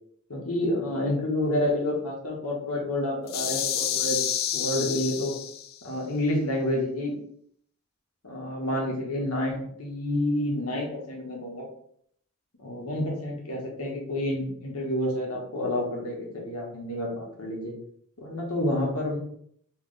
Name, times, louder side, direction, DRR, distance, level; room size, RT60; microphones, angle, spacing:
voice 1, 0.3-4.2 4.5-5.4 5.8-7.1 8.2-11.7 12.6-17.7 18.2-19.2, left 1 dB, 75° left, -1 dB, 1.3 m, -29 dB
sound 1, 3.3-5.8, left 10 dB, 45° left, 0.3 m, -29 dB
3.3 x 3.2 x 3.8 m, 0.67 s
head